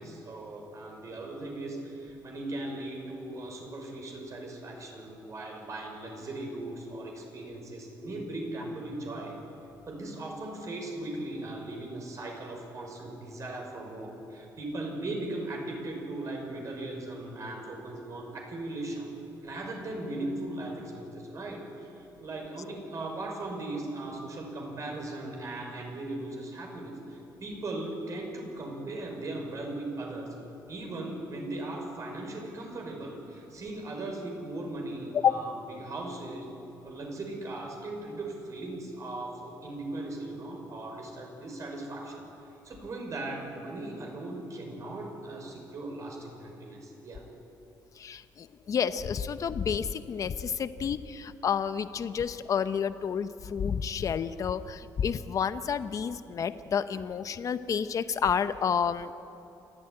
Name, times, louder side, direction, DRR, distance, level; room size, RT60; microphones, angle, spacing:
voice 1, 0.0-9.3 9.9-19.1 19.4-30.3 30.7-36.5 36.8-42.3 42.6-47.2, right 2 dB, 45° right, 1 dB, 5.9 m, -38 dB
voice 2, 48.0-59.1, left 7 dB, 50° left, 12 dB, 0.8 m, -30 dB
28.5 x 13.0 x 9.8 m, 2.8 s
cardioid pair, 130°, 7 cm